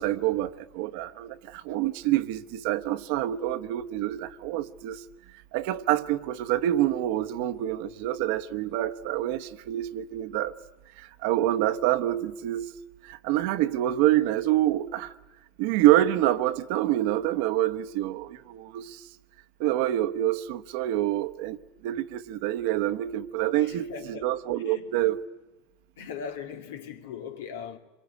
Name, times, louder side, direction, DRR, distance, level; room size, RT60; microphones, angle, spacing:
voice 1, 0.0-5.0 5.5-10.5 11.0-12.7 13.1-15.1 15.6-19.0 19.6-21.6 21.8-25.2, right 14 dB, 70° right, 1.0 m, -26 dB
voice 2, 23.6-24.9 26.0-27.8, left 6 dB, 90° left, 2.4 m, -40 dB
26.0 x 22.5 x 9.5 m
supercardioid pair, 125°, 0 cm